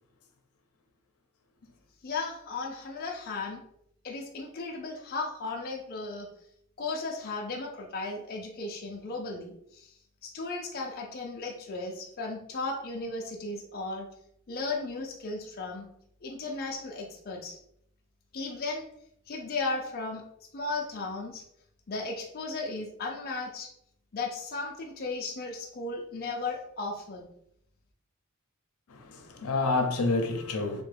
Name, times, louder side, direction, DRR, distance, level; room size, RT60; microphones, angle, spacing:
voice 1, 2.0-3.6 4.0-6.3 6.8-9.9 10.2-14.1 14.5-15.9 16.2-17.6 18.3-18.9 19.3-20.2 20.5-21.4 21.9-23.7 24.1-27.3, left 3 dB, 45° left, 0.4 m, -35 dB
voice 2, 28.9-30.8, left 3 dB, 85° left, 0.6 m, -28 dB
3.4 x 2.1 x 3.3 m
head